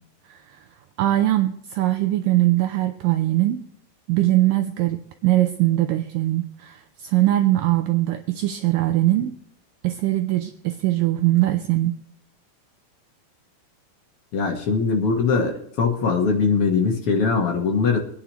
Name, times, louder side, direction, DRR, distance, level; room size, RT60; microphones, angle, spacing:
voice 1, 0.3-0.6 1.0-3.6 4.1-9.3 9.8-12.0, right 15 dB, 80° right, 7 dB, 2.0 m, -21 dB
voice 2, 14.3-18.0, left 5 dB, 60° left, 1 dB, 1.5 m, -21 dB
25.0 x 9.8 x 3.0 m, 0.75 s
omnidirectional pair, 4.5 m